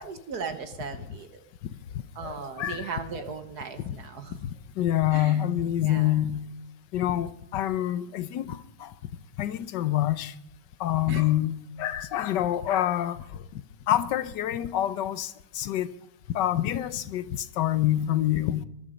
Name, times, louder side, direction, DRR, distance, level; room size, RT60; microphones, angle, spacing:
voice 1, 0.0-1.4 2.1-4.4 5.1-5.4 5.8-6.2 11.1-11.2, right 5 dB, 50° right, 1.7 m, -37 dB
voice 2, 2.2-2.9 3.9-4.0 4.3-4.5 4.8-6.4 6.9-8.9 9.4-10.3 10.8-11.5 11.8-13.2 13.9-15.9 16.3-18.7, left 12 dB, 65° left, 1.3 m, -27 dB
20.5 x 12.0 x 5.2 m
omnidirectional pair, 2.3 m